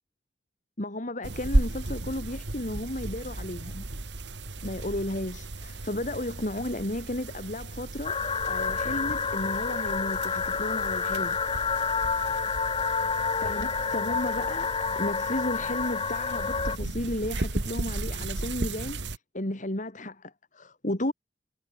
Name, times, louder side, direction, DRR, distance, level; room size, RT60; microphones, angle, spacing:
voice 1, 0.8-3.8 4.6-8.2 8.5-11.4 13.3-21.1, left 1 dB, 45° left, 3.5 m, -33 dB
sound 1, 1.2-19.2, right 2 dB, 90° right, 1.9 m, -35 dB
sound 2, 8.0-16.8, left 5 dB, 30° left, 0.8 m, -29 dB
head